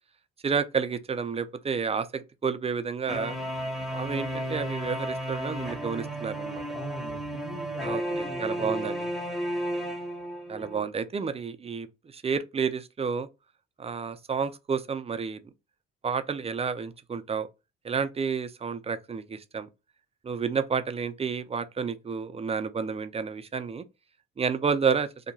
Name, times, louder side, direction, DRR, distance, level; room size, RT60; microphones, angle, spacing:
voice 1, 0.4-3.4 3.9-6.6 7.8-8.0 8.4-9.1 10.5-11.9 12.1-13.3 13.8-15.4 16.0-17.5 17.8-19.7 20.2-23.8 24.4-25.1, right 6 dB, 20° right, 0.3 m, -30 dB
sound 1, 3.1-10.8, equal, ahead, 0.7 m, -33 dB
voice 2, 6.7-8.9, left 1 dB, 80° left, 1.2 m, -41 dB
2.8 x 2.1 x 2.7 m
supercardioid pair, 55°, 30 cm